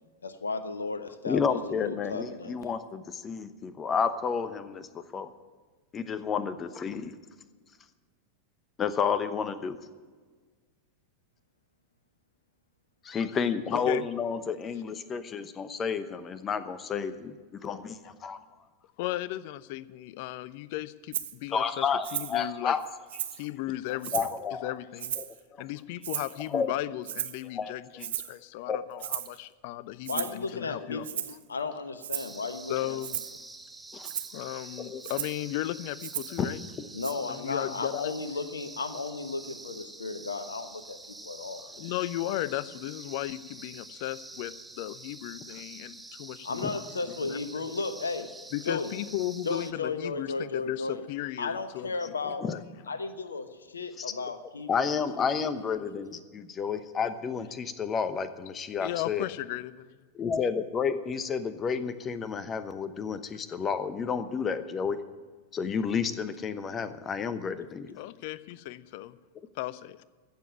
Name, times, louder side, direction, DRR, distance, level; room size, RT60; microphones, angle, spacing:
voice 1, 0.2-2.7 30.1-33.0 36.9-41.0 41.2-41.6 46.4-48.3 48.7-48.9 49.4-51.0 51.4-52.4 52.9-55.7, left 4 dB, 70° left, 11 dB, 1.0 m, -35 dB
voice 2, 1.2-5.3 5.9-7.1 8.8-9.8 13.0-17.3 17.6-18.4 21.5-22.8 24.1-24.7 25.2-25.3 26.5-26.7 27.6-28.1 28.7-29.1 33.9-34.1 34.8-35.0 36.4-36.5 36.8-36.9 52.4-52.6 54.0-54.1 54.7-59.3 60.1-65.0 65.5-68.0, left 6 dB, 25° left, 12 dB, 0.9 m, -31 dB
voice 3, 13.7-14.1 19.0-22.8 23.3-24.3 24.6-25.1 25.6-31.4 32.7-33.2 34.3-36.6 37.3-38.1 41.6-47.4 48.5-52.0 52.2-52.6 58.8-60.0 68.0-69.2 69.5-70.0, left 15 dB, 50° left, 18 dB, 0.5 m, -36 dB
Rattle (instrument), 21.1-21.3 22.0-22.4 22.8-23.5 24.0-24.4 25.0-25.4 26.0-26.5 27.0-27.4 28.0-28.4 29.0-29.4 30.0-30.4 31.0-31.4 32.0-32.4 33.0-33.4 34.0-34.3 35.0-35.4 36.0-36.4 37.0-37.1, right 11 dB, 60° right, 0.7 m, -35 dB
sound 1, 32.1-49.7, right 2 dB, 10° right, 0.8 m, -47 dB
15.0 x 7.2 x 8.6 m, 1.4 s
figure-of-eight pair, 90°, 0 cm